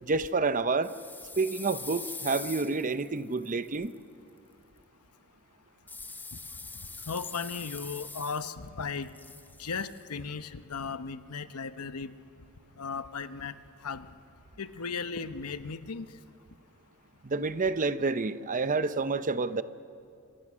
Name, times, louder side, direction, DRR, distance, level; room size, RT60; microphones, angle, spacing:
voice 1, 0.0-0.9 1.4-3.9 17.2-19.6, right 3 dB, 35° right, 13 dB, 0.7 m, -29 dB
sound 1, 0.8-3.9 5.9-8.7 8.9-10.0, left 3 dB, 10° left, 0.6 m, -43 dB
voice 2, 7.1-9.1 9.6-12.1 12.8-13.5 13.8-14.1 14.6-16.1, left 5 dB, 85° left, 11 dB, 0.9 m, -36 dB
26.5 x 25.5 x 6.3 m, 2.5 s
head